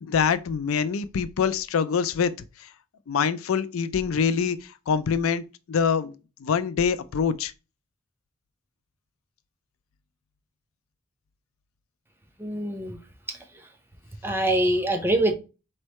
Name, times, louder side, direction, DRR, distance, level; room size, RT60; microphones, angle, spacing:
voice 1, 0.0-2.3 2.6-2.7 3.1-6.1 6.4-7.5, left 6 dB, 80° left, 0.4 m, -25 dB
voice 2, 12.4-13.0 14.2-15.3, right 1 dB, 10° right, 0.7 m, -24 dB
4.4 x 3.3 x 3.0 m
head